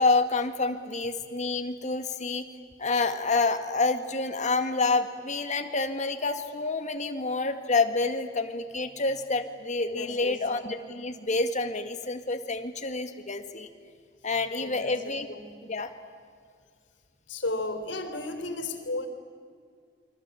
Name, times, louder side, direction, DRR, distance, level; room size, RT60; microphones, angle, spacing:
voice 1, 0.0-2.5 2.8-13.7 14.2-15.3 15.6-15.9, left 3 dB, 40° left, 8 dB, 2.0 m, -28 dB
voice 2, 9.9-10.4 14.6-14.9 15.3-15.5 17.3-19.1, left 2 dB, 90° left, 7 dB, 3.6 m, -34 dB
29.0 x 24.0 x 8.5 m, 2.2 s
head